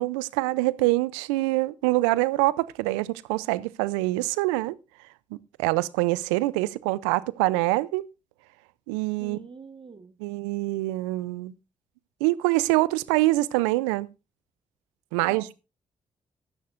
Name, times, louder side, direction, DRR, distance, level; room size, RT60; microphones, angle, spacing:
voice 1, 0.0-4.8 5.3-8.1 8.9-9.4 10.2-11.5 12.2-14.1 15.1-15.4, right 19 dB, 85° right, 0.5 m, -25 dB
voice 2, 9.2-10.2 15.2-15.5, right 5 dB, 35° right, 1.3 m, -44 dB
13.5 x 11.5 x 2.5 m
hypercardioid pair, 45°, 15 cm